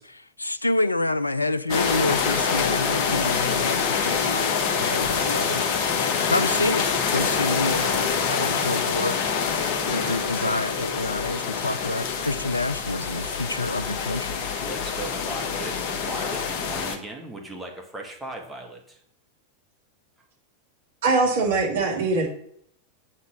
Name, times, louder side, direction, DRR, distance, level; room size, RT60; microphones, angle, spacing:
voice 1, 0.0-5.6 6.3-9.2 9.5-14.4, left 2 dB, 85° left, 0.3 m, -28 dB
sound 1, 1.7-17.0, left 6 dB, 45° left, 1.1 m, -26 dB
voice 2, 14.6-19.0, right 1 dB, 10° right, 1.4 m, -37 dB
voice 3, 21.0-22.3, right 3 dB, 55° right, 2.4 m, -22 dB
7.9 x 4.1 x 6.3 m
figure-of-eight pair, 90°, 0 cm